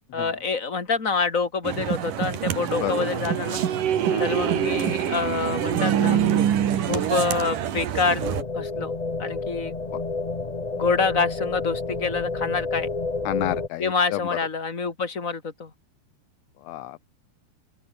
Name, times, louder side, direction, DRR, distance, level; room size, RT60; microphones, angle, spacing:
voice 1, 0.1-3.6 4.2-6.2 6.9-8.3 8.5-8.9 9.2-10.0 10.7-12.9 13.8-15.7, left 4 dB, 25° left, 3.0 m, -26 dB
sound 1, 1.7-8.4, right 9 dB, 90° right, 3.7 m, -25 dB
sound 2, 8.2-13.7, left 3 dB, 55° left, 0.4 m, -30 dB
voice 2, 13.2-14.2 16.7-17.1, left 16 dB, 80° left, 1.6 m, -30 dB
open air
omnidirectional pair, 3.6 m